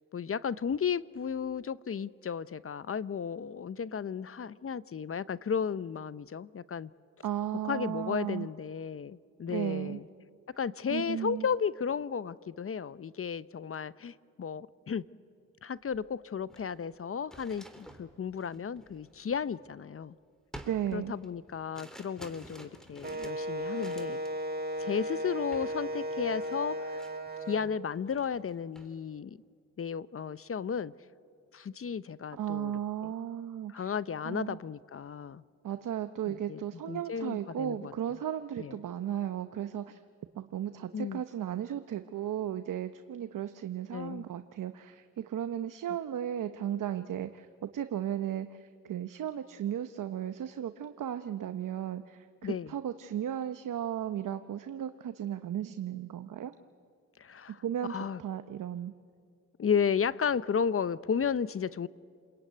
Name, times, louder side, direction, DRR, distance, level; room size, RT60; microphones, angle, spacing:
voice 1, 0.1-6.9 7.6-10.1 10.6-15.0 15.6-20.2 20.9-24.2 24.8-27.0 27.5-29.4 29.8-30.9 31.5-32.7 33.0-33.1 33.7-35.4 36.3-36.6 36.9-37.9 38.6-38.8 40.9-41.2 43.9-44.2 52.4-52.7 57.2-57.6 57.9-58.2 59.6-61.9, left 7 dB, 45° left, 0.7 m, -34 dB
voice 2, 7.2-8.5 9.5-10.0 10.9-11.5 20.7-21.1 32.3-33.9 34.2-34.6 35.6-40.0 40.4-56.5 57.6-58.9, right 10 dB, 75° right, 0.9 m, -35 dB
sound 1, 15.9-16.0 16.4-20.0 20.5-24.4 24.7-25.0 25.5-25.8 26.0-27.7 28.0-28.9, right 1 dB, ahead, 3.4 m, -51 dB
Wind instrument woodwind instrument, 23.0-27.7, equal, 30° right, 1.7 m, -35 dB
27.5 x 21.5 x 9.4 m
cardioid pair, 65°, 32 cm